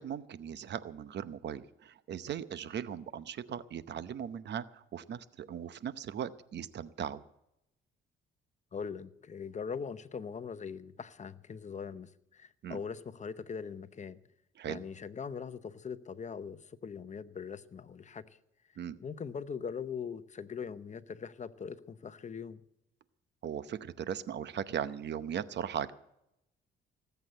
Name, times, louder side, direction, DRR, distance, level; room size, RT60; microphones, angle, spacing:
voice 1, 0.0-7.2 12.6-12.8 14.6-14.8 18.8-19.0 23.4-25.9, right 9 dB, 60° right, 0.8 m, -38 dB
voice 2, 8.7-14.2 14.7-18.4 19.0-22.6, left 6 dB, 35° left, 0.8 m, -41 dB
18.5 x 8.1 x 7.8 m
cardioid pair, 90°, 20 cm